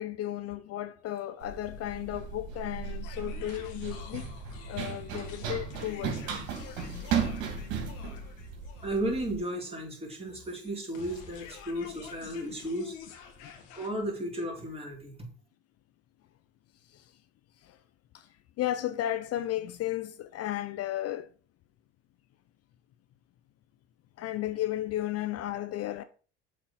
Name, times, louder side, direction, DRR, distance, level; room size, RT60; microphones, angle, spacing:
voice 1, 0.0-4.3 4.7-6.2 6.5-7.0 18.6-21.3 24.2-26.0, left 13 dB, 50° left, 0.5 m, -34 dB
Run, 1.4-9.4, right 6 dB, 70° right, 2.5 m, -36 dB
sound 1, 3.0-13.9, left 6 dB, 70° left, 1.6 m, -48 dB
voice 2, 8.8-12.9 13.7-15.1, right 1 dB, 20° right, 3.5 m, -34 dB
7.5 x 4.1 x 5.6 m
hypercardioid pair, 70°, 31 cm